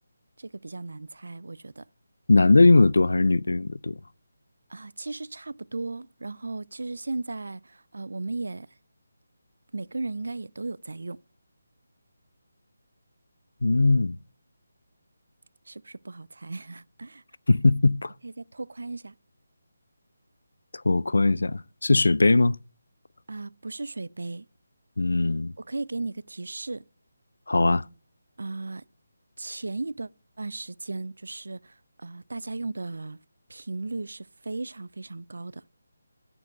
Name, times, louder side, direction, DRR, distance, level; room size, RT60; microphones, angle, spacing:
voice 1, 0.4-1.9 4.7-8.7 9.7-11.2 15.7-17.2 18.2-19.2 22.3-22.4 23.3-24.5 25.6-26.9 28.4-28.8 29.4-30.1 30.4-33.2 33.5-35.6, right 3 dB, 80° right, 0.3 m, -36 dB
voice 2, 2.3-3.9 13.6-14.2 17.5-18.1 20.9-22.6 25.0-25.5 27.5-27.8, left 3 dB, 90° left, 0.3 m, -20 dB
8.4 x 6.8 x 5.1 m
hypercardioid pair, 180°, 0 cm